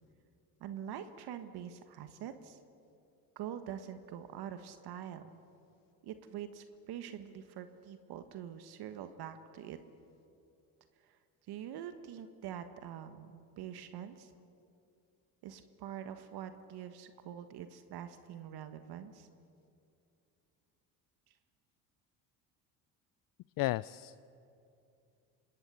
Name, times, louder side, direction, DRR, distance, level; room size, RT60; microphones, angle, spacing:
voice 1, 0.6-2.6 3.3-5.4 6.0-9.8 11.0-11.2 11.5-14.3 15.4-19.3, right 9 dB, 65° right, 9 dB, 1.6 m, -45 dB
voice 2, 23.6-24.3, left 18 dB, 55° left, 18 dB, 0.5 m, -34 dB
25.5 x 20.5 x 8.4 m, 2.6 s
supercardioid pair, 80°, 42 cm